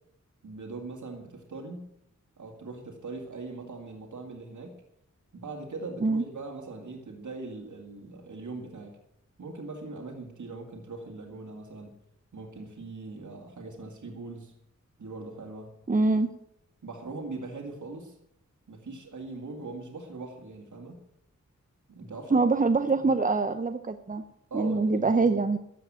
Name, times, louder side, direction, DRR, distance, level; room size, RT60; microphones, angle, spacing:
voice 1, 0.4-1.9 2.4-4.8 5.3-9.0 9.4-12.0 12.3-14.5 15.0-15.7 16.8-18.2 18.7-21.0 21.9-22.5 23.0-23.2 24.5-25.3, right 3 dB, 75° right, 0 dB, 2.4 m, -41 dB
voice 2, 15.9-16.3 22.3-24.2 24.5-25.6, right 3 dB, 25° right, 8 dB, 0.7 m, -24 dB
14.0 x 7.7 x 8.9 m, 0.76 s
wide cardioid pair, 90°, 30 cm